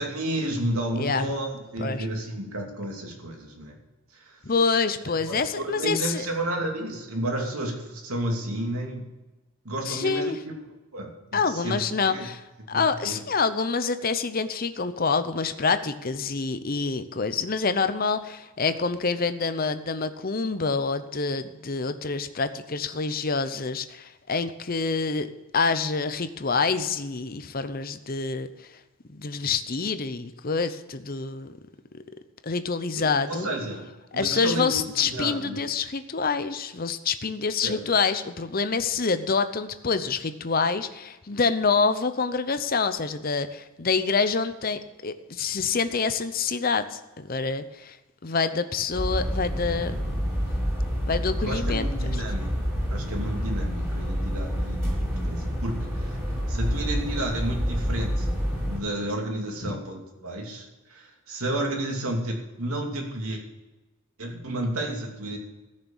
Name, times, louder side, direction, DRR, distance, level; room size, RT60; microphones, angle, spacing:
voice 1, 0.0-3.8 4.1-4.4 5.2-9.1 9.6-10.5 10.9-12.3 12.7-13.2 32.9-33.9 34.1-35.6 37.6-37.9 51.4-52.5 52.9-58.3 58.7-63.4 64.2-65.4, right 1 dB, 85° right, 1 dB, 2.8 m, -31 dB
voice 2, 4.4-6.3 9.9-10.4 11.3-12.4 12.7-25.3 25.5-28.5 29.1-31.5 32.4-33.5 34.1-48.0 48.2-50.1 51.0-51.9 59.6-59.8, left 4 dB, 40° left, 11 dB, 0.8 m, -26 dB
sound 1, 48.9-58.8, equal, 10° right, 3.9 m, -28 dB
14.5 x 6.6 x 7.3 m, 1.1 s
head